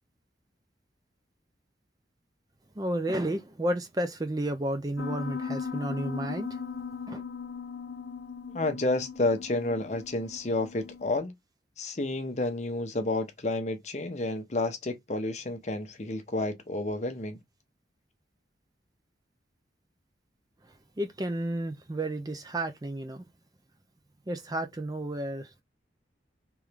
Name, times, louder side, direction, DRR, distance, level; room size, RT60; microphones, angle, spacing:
voice 1, 2.8-6.6 7.1-7.2 21.0-23.3 24.3-25.6, right 1 dB, 20° right, 0.4 m, -32 dB
Piano, 5.0-11.2, left 5 dB, 75° left, 0.7 m, -38 dB
voice 2, 8.5-11.3 11.8-17.4, left 2 dB, 40° left, 0.8 m, -30 dB
3.6 x 3.0 x 3.3 m
head